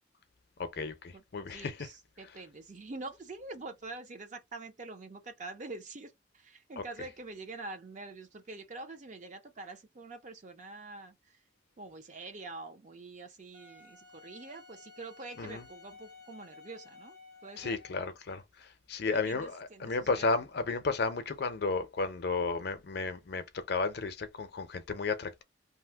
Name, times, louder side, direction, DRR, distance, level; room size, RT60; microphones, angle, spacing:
voice 1, 0.6-1.9 6.8-6.9 15.4-15.6 17.6-18.4 18.9-25.4, left 4 dB, 55° left, 0.5 m, -33 dB
voice 2, 1.1-11.4 11.8-17.2 17.4-17.8 19.1-20.3, right 3 dB, 40° right, 0.5 m, -45 dB
Wind instrument woodwind instrument, 13.5-18.1, left 4 dB, 60° right, 1.5 m, -54 dB
2.7 x 2.0 x 3.4 m
head